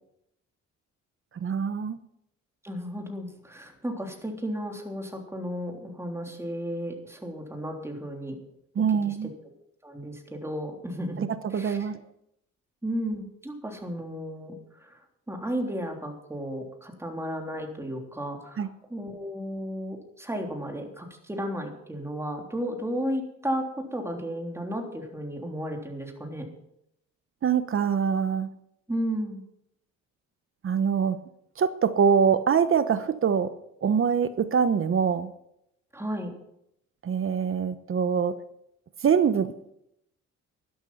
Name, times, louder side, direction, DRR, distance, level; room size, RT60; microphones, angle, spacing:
voice 1, 1.3-2.0 8.7-9.3 11.2-12.0 18.6-18.7 27.4-28.5 30.6-31.2 31.6-33.5 33.8-35.3 37.0-38.4 39.0-39.5, right 7 dB, 45° right, 12 dB, 1.0 m, -24 dB
voice 2, 2.6-8.4 9.0-9.2 9.8-11.2 11.5-11.8 12.8-14.5 14.8-15.0 15.3-23.7 23.9-26.5 28.9-29.4 35.9-36.3, equal, 10° right, 1 dB, 3.4 m, -33 dB
12.5 x 12.0 x 5.7 m, 0.78 s
cardioid pair, 90°, 30 cm